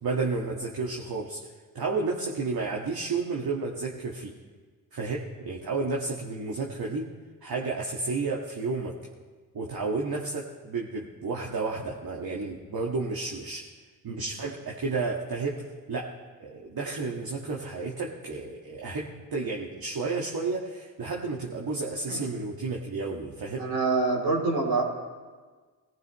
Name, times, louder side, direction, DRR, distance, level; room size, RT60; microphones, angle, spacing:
voice 1, 0.0-1.5 1.7-4.3 4.9-7.1 7.4-9.0 9.5-13.7 14.0-16.1 16.4-23.6, right 3 dB, 50° right, -1 dB, 1.9 m, -31 dB
voice 2, 23.6-24.8, right 3 dB, 80° right, -3 dB, 3.5 m, -26 dB
20.5 x 14.5 x 3.2 m, 1.4 s
hypercardioid pair, 45°, 47 cm